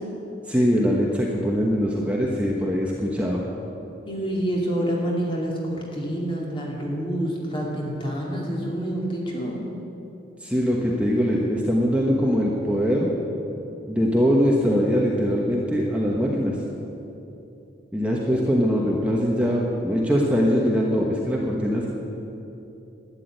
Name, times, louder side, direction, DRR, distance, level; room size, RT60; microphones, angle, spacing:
voice 1, 0.5-3.4 10.4-13.1 13.9-16.6 17.9-21.9, equal, 5° right, -3 dB, 1.2 m, -22 dB
voice 2, 4.1-9.6, right 1 dB, 25° left, -2 dB, 2.6 m, -27 dB
12.0 x 10.0 x 9.1 m, 2.9 s
head